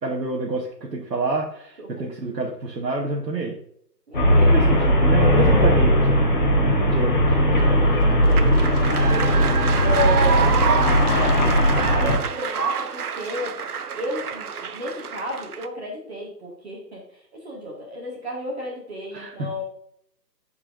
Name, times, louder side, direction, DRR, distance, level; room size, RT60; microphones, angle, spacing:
voice 1, 0.0-3.5 4.4-6.3 6.9-7.4 19.1-19.5, right 3 dB, 85° right, -3 dB, 1.6 m, -28 dB
voice 2, 1.8-2.1 4.1-4.6 7.0-7.3 7.5-13.7 13.9-19.6, equal, 40° right, -3 dB, 1.9 m, -33 dB
Traffic noise roadway noise, 4.1-12.2, equal, 30° left, 1.3 m, -18 dB
sound 1, 7.6-15.7, right 7 dB, 65° right, 0.7 m, -28 dB
13.5 x 4.8 x 2.5 m, 0.69 s
hypercardioid pair, 170°, 49 cm